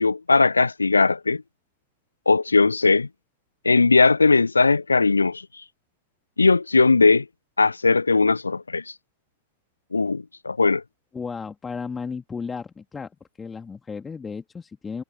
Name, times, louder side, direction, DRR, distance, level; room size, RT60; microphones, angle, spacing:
voice 1, 0.0-1.4 2.3-3.1 3.6-5.5 6.4-7.3 7.6-8.9 9.9-10.8, left 3 dB, 80° left, 0.4 m, -19 dB
voice 2, 11.1-13.1 13.4-15.0, left 5 dB, 15° left, 2.6 m, -34 dB
figure-of-eight pair, 90°, 0 cm